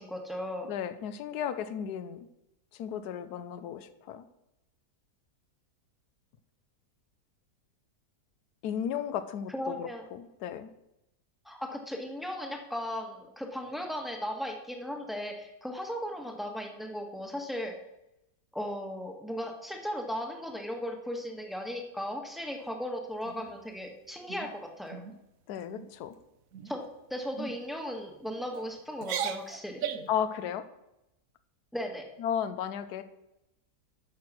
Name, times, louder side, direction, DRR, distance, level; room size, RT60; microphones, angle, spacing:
voice 1, 0.0-0.7 9.5-10.0 11.4-17.8 18.5-25.0 26.6-26.8 27.1-29.8 31.7-32.1, equal, ahead, 2 dB, 1.2 m, -36 dB
voice 2, 0.7-2.3 2.7-4.2 8.6-10.7 25.5-26.1 30.1-30.7 32.2-33.0, left 9 dB, 75° left, 12 dB, 1.2 m, -34 dB
sound 1, 23.2-23.8 24.3-24.5 24.9-25.2 25.5-25.9 26.5-26.9 27.4-27.5 28.3-28.6 29.0-30.2, right 8 dB, 65° right, 1.1 m, -37 dB
9.5 x 6.5 x 6.1 m, 0.88 s
omnidirectional pair, 1.7 m